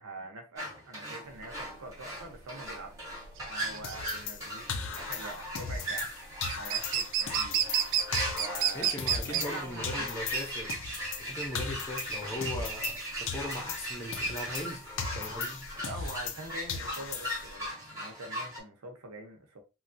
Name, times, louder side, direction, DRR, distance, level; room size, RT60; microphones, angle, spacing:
voice 1, 0.0-2.9 3.5-4.7 4.9-6.1 6.6-7.6 8.4-10.1 15.8-19.6, right 2 dB, 90° right, 0.8 m, -44 dB
sound 1, 0.6-18.6, right 1 dB, 15° right, 1.0 m, -38 dB
sound 2, 1.3-17.7, right 9 dB, 55° right, 0.3 m, -33 dB
sound 3, 3.8-6.1 6.4-9.6 9.8-13.0 13.3-16.4 16.7-17.5, left 5 dB, 60° left, 0.5 m, -38 dB
voice 2, 8.7-10.7 11.2-14.9 15.1-15.7, left 1 dB, 10° left, 0.5 m, -39 dB
3.1 x 2.3 x 2.6 m
head